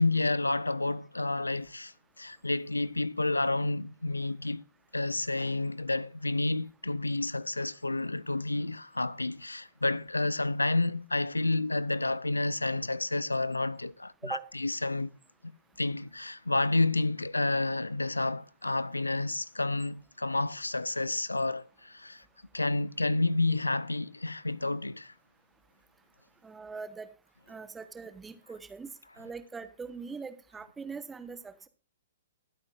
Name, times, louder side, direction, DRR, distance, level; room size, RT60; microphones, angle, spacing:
voice 1, 0.0-1.9 2.2-4.6 4.9-15.2 15.8-22.2 22.5-25.1, left 2 dB, 80° left, 0.4 m, -30 dB
voice 2, 26.4-27.1 27.5-31.7, right 5 dB, 10° right, 1.2 m, -42 dB
21.5 x 8.7 x 2.5 m
figure-of-eight pair, 115°, 0 cm